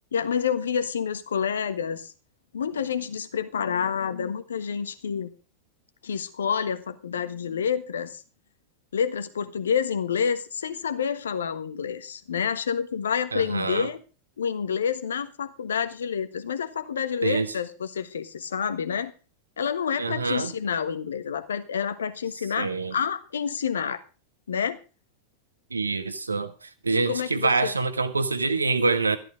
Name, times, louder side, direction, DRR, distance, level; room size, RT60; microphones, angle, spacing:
voice 1, 0.1-2.1 2.5-5.3 6.0-8.2 8.9-14.0 14.4-19.1 19.6-24.0 24.5-24.8 26.9-27.7, left 7 dB, 65° left, 1.4 m, -28 dB
voice 2, 13.3-13.9 17.2-17.5 20.0-20.5 22.6-22.9 25.7-26.5 26.8-29.2, right 3 dB, 80° right, 1.3 m, -25 dB
14.0 x 12.0 x 5.0 m
figure-of-eight pair, 90°, 0 cm